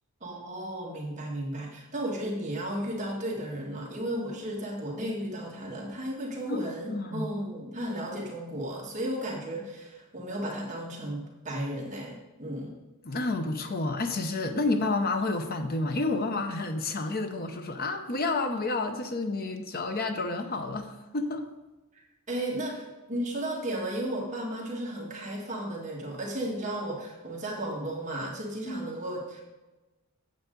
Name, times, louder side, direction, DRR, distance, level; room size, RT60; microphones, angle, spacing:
voice 1, 0.2-12.8 21.9-22.0 22.3-29.4, right 1 dB, 35° right, -2 dB, 1.5 m, -34 dB
voice 2, 6.5-7.3 13.0-21.5 28.6-28.9, left 2 dB, 45° left, 6 dB, 0.7 m, -30 dB
8.3 x 7.8 x 3.8 m, 1.1 s
head